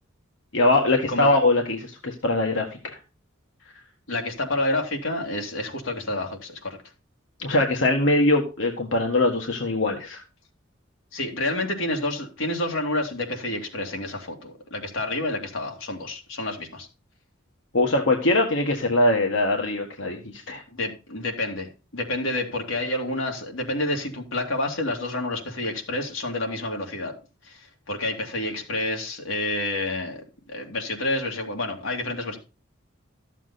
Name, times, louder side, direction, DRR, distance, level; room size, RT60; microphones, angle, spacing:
voice 1, 0.5-3.0 7.4-10.2 17.7-20.6, left 2 dB, 65° left, 2 dB, 1.6 m, -22 dB
voice 2, 4.1-6.8 11.1-16.9 20.7-27.1 27.4-32.4, left 2 dB, 85° left, 2 dB, 2.7 m, -29 dB
13.5 x 7.3 x 4.1 m, 0.32 s
head